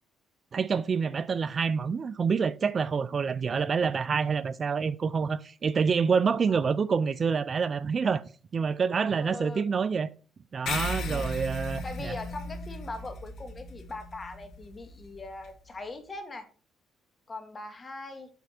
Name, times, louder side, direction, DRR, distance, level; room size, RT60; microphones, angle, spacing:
voice 1, 0.5-8.2 8.5-10.1 10.5-12.2, right 5 dB, 40° right, 0.4 m, -27 dB
voice 2, 9.2-9.6 11.1-11.4 11.8-16.5 17.3-18.3, left 2 dB, 30° left, 1.8 m, -41 dB
sound 1, 10.7-15.5, left 2 dB, 65° left, 1.5 m, -36 dB
7.9 x 6.0 x 4.3 m
cardioid pair, 100°, 0 cm